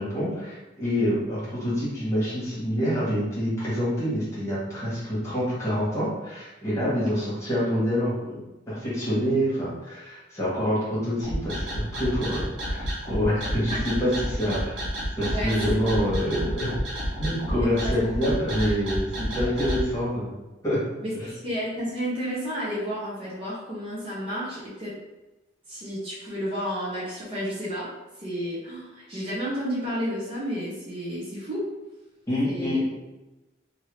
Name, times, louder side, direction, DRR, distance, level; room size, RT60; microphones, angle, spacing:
voice 1, 0.0-14.8 15.2-16.7 17.2-20.4 20.6-20.8 21.2-21.3 32.3-32.8, equal, 15° left, -10 dB, 1.3 m, -27 dB
sound 1, 11.2-19.8, equal, 85° right, 1.2 m, -29 dB
voice 2, 17.5-17.9 18.3-18.4 19.4-19.6 21.0-21.1 21.4-24.9 25.7-27.9 28.2-31.6 32.4-32.8, equal, 30° right, -8 dB, 0.8 m, -31 dB
2.8 x 2.7 x 3.1 m, 1.1 s
head